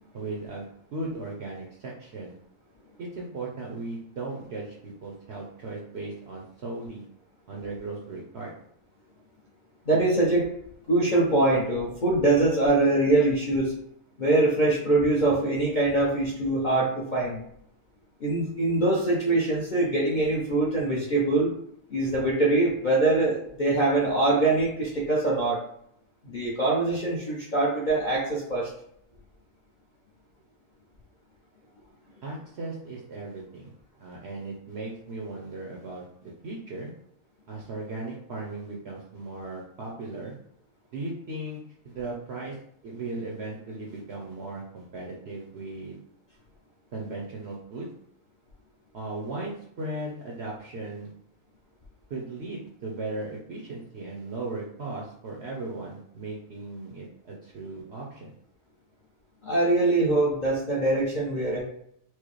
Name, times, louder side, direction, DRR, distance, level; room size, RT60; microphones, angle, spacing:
voice 1, 0.1-2.4 3.0-7.0 7.5-8.5 32.2-33.7 34.0-36.9 37.5-40.4 40.9-41.6 41.8-42.6 42.8-46.0 46.9-47.9 48.9-51.1 52.1-58.4, right 2 dB, 60° right, -2 dB, 0.7 m, -37 dB
voice 2, 9.9-10.5 10.9-13.7 14.2-17.4 18.2-21.5 21.9-25.6 26.2-28.7 59.4-61.6, right 2 dB, 50° left, -5 dB, 0.6 m, -23 dB
4.6 x 2.0 x 3.0 m, 0.71 s
omnidirectional pair, 1.6 m